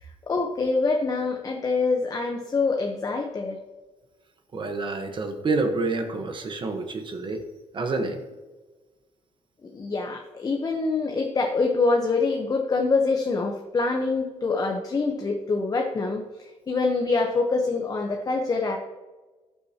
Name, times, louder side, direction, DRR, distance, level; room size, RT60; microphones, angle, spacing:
voice 1, 0.0-3.6 9.7-18.8, left 3 dB, 30° left, 2 dB, 1.0 m, -25 dB
voice 2, 4.5-7.4 7.7-8.2, right 3 dB, 40° right, 5 dB, 1.2 m, -28 dB
14.0 x 8.4 x 2.9 m, 1.2 s
cardioid pair, 120°, 13 cm